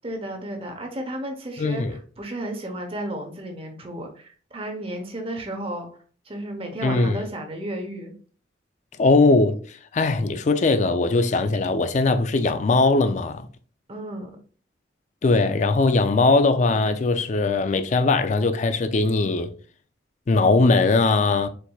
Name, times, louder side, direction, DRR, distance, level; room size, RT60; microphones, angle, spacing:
voice 1, 0.0-6.0 6.2-8.1 13.9-14.4, right 1 dB, 30° right, 0.8 m, -33 dB
voice 2, 1.6-2.0 6.8-7.2 9.0-13.5 15.2-19.5 20.3-21.5, left 3 dB, 40° left, 0.4 m, -20 dB
4.6 x 4.0 x 2.3 m
head